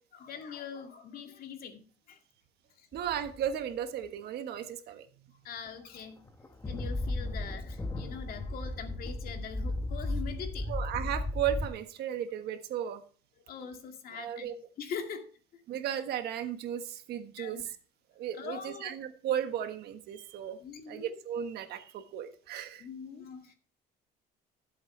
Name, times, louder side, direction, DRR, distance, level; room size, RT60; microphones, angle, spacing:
voice 1, 0.2-2.2 2.8-2.9 5.4-6.2 6.7-10.9 13.5-15.3 15.5-15.6 17.4-17.6 18.3-19.0 20.6-21.2 22.8-23.5, left 7 dB, 60° left, 2.2 m, -43 dB
sound 1, 2.9-3.5 5.7-5.8 6.3-11.7, left 1 dB, 15° left, 1.3 m, -35 dB
voice 2, 2.9-5.1 10.7-13.0 14.1-14.5 15.7-17.6 18.1-20.6 20.9-22.8, right 10 dB, 75° right, 1.4 m, -35 dB
15.0 x 8.0 x 3.2 m
cardioid pair, 110°, 17 cm